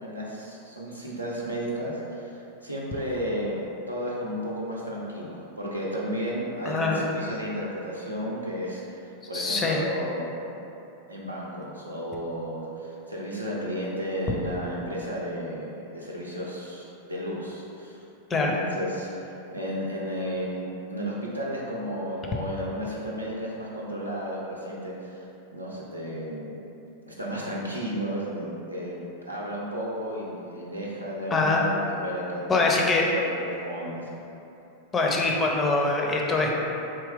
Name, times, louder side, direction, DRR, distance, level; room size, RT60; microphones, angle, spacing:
voice 1, 0.0-10.3 11.1-18.0 18.3-25.2 25.5-26.6 27.1-32.5 33.1-34.2, equal, 85° right, -5 dB, 0.6 m, -33 dB
voice 2, 6.7-7.0 9.3-9.8 18.3-18.5 31.3-31.6 32.5-33.1 34.9-36.5, left 3 dB, 20° left, -1 dB, 0.5 m, -23 dB
3.7 x 2.8 x 3.3 m, 2.9 s
figure-of-eight pair, 90°, 0 cm